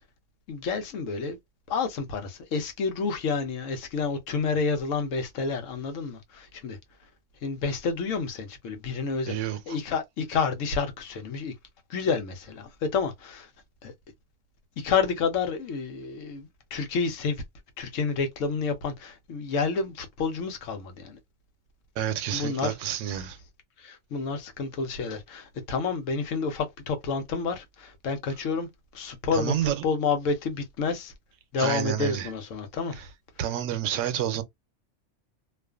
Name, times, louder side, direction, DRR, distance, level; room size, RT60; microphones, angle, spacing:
voice 1, 0.5-1.4 1.7-6.8 7.4-11.5 11.9-13.5 13.8-13.9 14.8-17.4 17.8-21.2 22.3-22.7 23.8-28.7 28.9-31.1 31.5-33.1, left 5 dB, 85° left, 1.1 m, -29 dB
voice 2, 9.3-9.8 22.0-23.4 29.3-29.7 31.6-32.3 33.4-34.4, right 11 dB, 80° right, 0.9 m, -29 dB
2.4 x 2.4 x 2.3 m
omnidirectional pair, 1.3 m